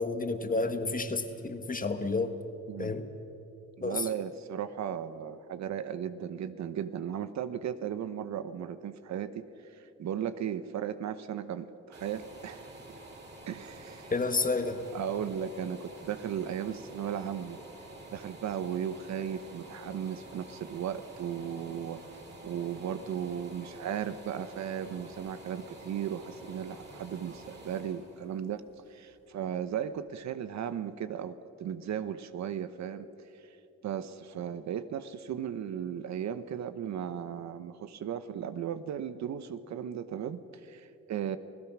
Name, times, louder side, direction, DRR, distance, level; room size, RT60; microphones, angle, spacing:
voice 1, 0.0-2.3 2.8-3.1 3.8-4.0 14.1-14.8, left 3 dB, 25° left, 8 dB, 1.5 m, -30 dB
voice 2, 3.8-13.0 13.5-14.1 14.9-17.6 18.1-22.0 22.4-28.6 28.9-33.1 33.8-41.4, right 9 dB, 65° right, 12 dB, 0.9 m, -36 dB
sound 1, 11.9-29.6 30.1-30.2, right 1 dB, 35° right, 4.7 m, -49 dB
27.5 x 17.0 x 6.1 m, 2.9 s
cardioid pair, 90°, 30 cm